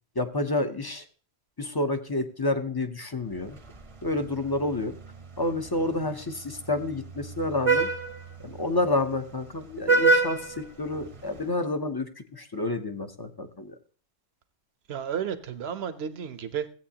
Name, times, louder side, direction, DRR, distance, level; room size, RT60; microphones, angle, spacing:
voice 1, 0.2-1.0 1.6-3.6 4.0-4.9 5.4-7.9 8.4-13.7, left 2 dB, 25° left, 8 dB, 0.6 m, -29 dB
Vehicle horn car horn honking, 3.3-11.5, right 3 dB, 30° right, 0.7 m, -29 dB
voice 2, 14.9-16.7, right 8 dB, 65° right, 11 dB, 1.0 m, -32 dB
15.5 x 8.2 x 2.8 m, 0.41 s
omnidirectional pair, 1.2 m